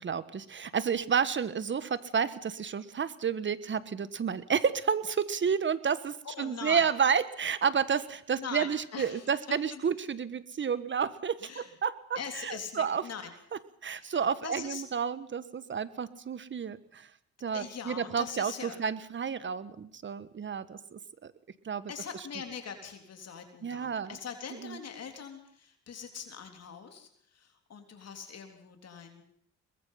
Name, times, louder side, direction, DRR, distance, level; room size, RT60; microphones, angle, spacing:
voice 1, 0.0-13.0 13.8-17.1 17.4-21.3 21.6-21.9 23.6-24.1 24.6-24.8, right 7 dB, 40° right, 15 dB, 1.4 m, -31 dB
voice 2, 6.3-6.9 8.4-9.3 9.7-9.8 11.4-11.7 12.2-13.3 14.0-14.8 17.5-18.8 21.9-29.2, left 6 dB, 55° left, 5 dB, 3.6 m, -42 dB
23.0 x 21.0 x 5.8 m, 0.65 s
cardioid pair, 90°, 30 cm